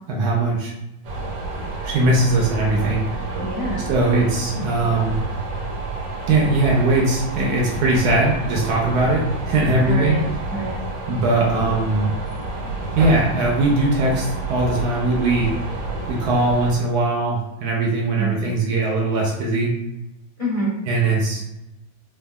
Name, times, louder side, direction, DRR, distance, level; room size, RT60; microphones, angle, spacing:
voice 1, 0.1-0.7 1.8-3.2 3.9-5.2 6.3-10.2 11.1-12.1 12.9-15.5 16.1-19.7 20.9-21.4, right 2 dB, 70° right, -2 dB, 1.0 m, -20 dB
sound 1, 1.0-16.7, right 2 dB, 85° right, 1.5 m, -29 dB
voice 2, 3.4-3.9 9.8-10.8 18.2-18.5 20.4-20.7, equal, 65° left, -7 dB, 0.3 m, -27 dB
3.5 x 2.2 x 2.2 m, 0.92 s
omnidirectional pair, 2.0 m